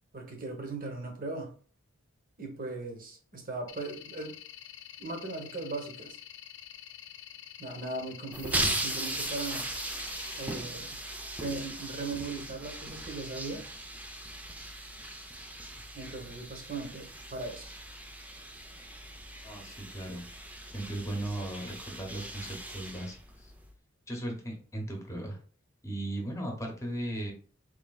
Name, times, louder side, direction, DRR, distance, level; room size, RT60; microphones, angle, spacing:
voice 1, 0.1-1.5 2.4-4.3 5.0-6.2 7.6-9.7 10.4-11.0 11.4-13.6 15.9-17.6, right 3 dB, 45° right, 3 dB, 1.0 m, -38 dB
sound 1, 3.7-10.5, left 11 dB, 60° left, 0.4 m, -48 dB
sound 2, 8.3-23.7, right 1 dB, 5° right, 0.4 m, -38 dB
voice 2, 19.4-20.2 20.7-23.2 23.4-23.5 24.1-25.4 25.8-27.3, right 1 dB, 15° left, 1 dB, 1.0 m, -37 dB
4.2 x 3.3 x 2.3 m, 0.41 s
head